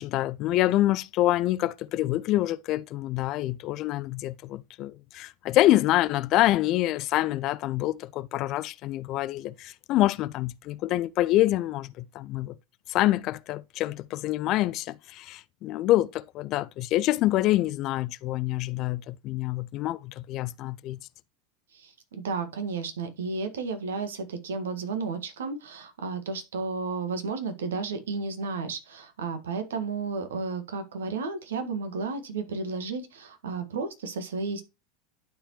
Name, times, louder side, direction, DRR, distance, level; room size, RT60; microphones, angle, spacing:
voice 1, 0.0-12.5 12.9-21.0, left 15 dB, 45° left, 0.4 m, -26 dB
voice 2, 21.7-34.6, right 4 dB, 70° right, 1.6 m, -33 dB
11.5 x 4.8 x 3.0 m
figure-of-eight pair, 80°, 0 cm